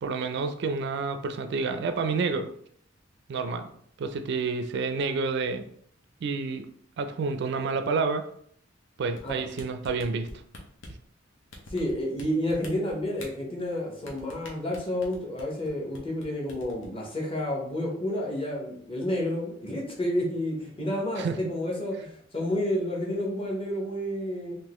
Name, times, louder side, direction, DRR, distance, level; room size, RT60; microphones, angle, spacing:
voice 1, 0.0-2.5 3.3-3.7 4.0-5.7 6.2-6.7 7.0-8.3 9.0-10.3 21.2-21.4, right 4 dB, 60° right, 8 dB, 0.3 m, -29 dB
sound 1, 9.2-11.0 11.5-12.2 12.5-13.3 14.1-15.7 15.9-16.2 16.5-16.9, left 2 dB, 80° left, 0.9 m, -44 dB
voice 2, 11.7-24.6, left 1 dB, 30° left, -2 dB, 1.0 m, -30 dB
3.6 x 2.7 x 3.0 m, 0.64 s
head